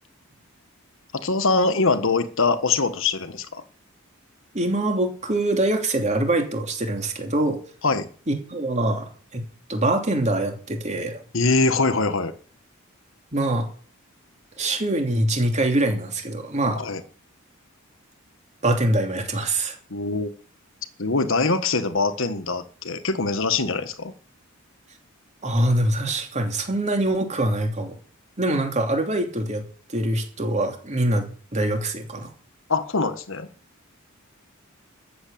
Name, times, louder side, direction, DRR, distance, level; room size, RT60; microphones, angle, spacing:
voice 1, 1.1-3.6 7.8-8.1 11.3-12.3 16.8-17.0 19.9-20.3 21.0-24.1 32.7-33.5, left 3 dB, 65° left, 10 dB, 1.5 m, -23 dB
voice 2, 4.5-7.6 8.3-9.4 9.7-11.2 13.3-13.7 14.6-16.8 18.6-19.8 25.4-27.9 28.4-29.6 29.9-32.3, right 1 dB, 35° right, 4 dB, 3.0 m, -24 dB
13.5 x 7.8 x 8.7 m, 0.43 s
head